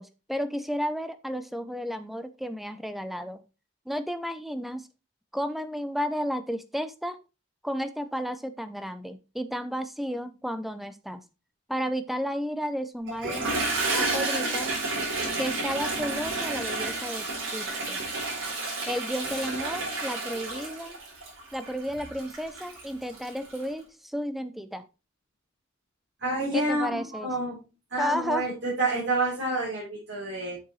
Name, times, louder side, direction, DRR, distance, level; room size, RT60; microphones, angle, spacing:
voice 1, 0.0-3.4 3.9-4.8 5.3-7.2 7.6-11.2 11.7-13.5 13.9-14.7 15.4-18.0 18.9-21.0 21.5-24.8 26.5-27.3 28.0-28.5, equal, ahead, 11 dB, 0.5 m, -32 dB
Toilet flush, 13.1-23.6, right 3 dB, 85° right, 4.1 m, -31 dB
voice 2, 26.2-27.6 27.9-30.6, right 2 dB, 60° right, -6 dB, 3.4 m, -28 dB
7.5 x 6.5 x 3.1 m, 0.29 s
head